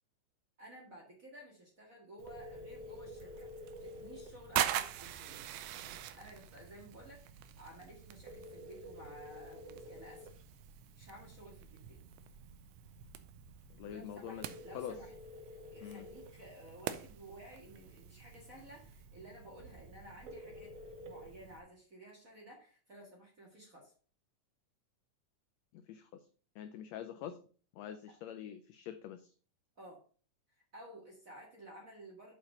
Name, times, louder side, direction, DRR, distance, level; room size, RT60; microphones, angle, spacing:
voice 1, 0.6-3.5 3.8-5.5 6.1-10.3 11.0-12.0 13.8-15.1 15.4-20.7 21.0-23.9 28.1-28.2 29.8-30.0 30.5-32.3, right 1 dB, 35° right, -2 dB, 1.5 m, -54 dB
Telephone, 2.2-21.6, equal, 65° right, 1.6 m, -52 dB
sound 1, 3.2-19.0, right 12 dB, 80° right, 2.1 m, -43 dB
voice 2, 13.8-14.5 14.7-14.9 15.8-16.1 25.7-26.2 26.5-27.4 27.7-29.3, left 10 dB, 85° left, 9 dB, 1.5 m, -45 dB
7.3 x 4.9 x 5.4 m, 0.41 s
omnidirectional pair, 3.7 m